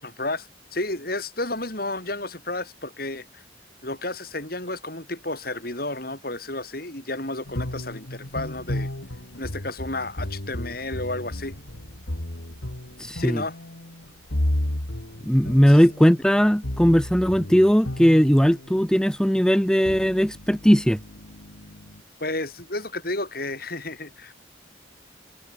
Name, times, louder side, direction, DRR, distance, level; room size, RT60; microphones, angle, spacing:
voice 1, 0.0-3.4 3.8-8.9 9.4-11.5 13.2-13.6 15.7-15.8 22.2-24.4, left 2 dB, 50° left, 7.5 m, -32 dB
sound 1, 7.4-18.9 19.6-22.0, left 1 dB, 85° left, 2.8 m, -33 dB
voice 2, 13.0-13.4 15.2-21.0, equal, 5° left, 0.9 m, -18 dB
head